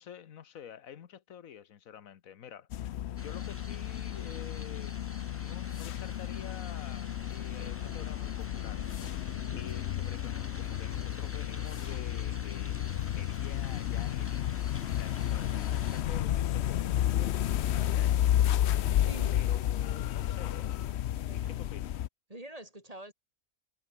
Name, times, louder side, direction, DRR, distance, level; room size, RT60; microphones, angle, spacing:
voice 1, 0.0-2.7 3.0-9.2 9.5-18.3 19.3-20.9 21.3-22.0, left 9 dB, 85° left, 1.5 m, -49 dB
sound 1, 2.7-22.1, left 12 dB, 60° left, 0.8 m, -32 dB
sound 2, 3.2-16.0, left 1 dB, 10° left, 1.2 m, -49 dB
voice 2, 15.3-15.9 18.8-19.4 21.1-21.6 22.3-23.1, right 1 dB, 25° right, 4.8 m, -47 dB
omnidirectional pair, 1.4 m